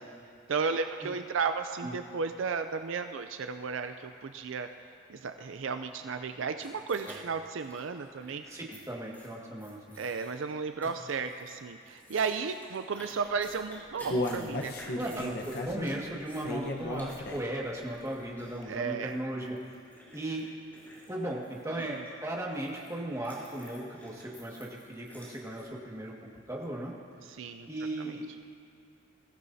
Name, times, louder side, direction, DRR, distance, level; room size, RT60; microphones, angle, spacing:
voice 1, 0.5-4.7 5.1-8.4 10.0-15.2 18.7-19.2 21.8-22.0 27.2-27.7 28.0-28.2, right 5 dB, 70° right, 8 dB, 0.5 m, -34 dB
sound 1, 6.6-8.8 9.1-9.3 9.6-10.5 10.8-11.5 11.8-22.9 23.2-25.6, equal, 10° left, 3.9 m, -52 dB
voice 2, 8.5-10.0 15.0-15.4 15.7-19.6 20.1-20.5 21.1-26.9 27.7-28.3, right 1 dB, 15° right, -3 dB, 1.8 m, -37 dB
Human voice, 13.5-17.7 18.0-18.1 18.6-18.7, left 1 dB, 55° left, 1.0 m, -34 dB
21.5 x 15.0 x 2.8 m, 2.3 s
head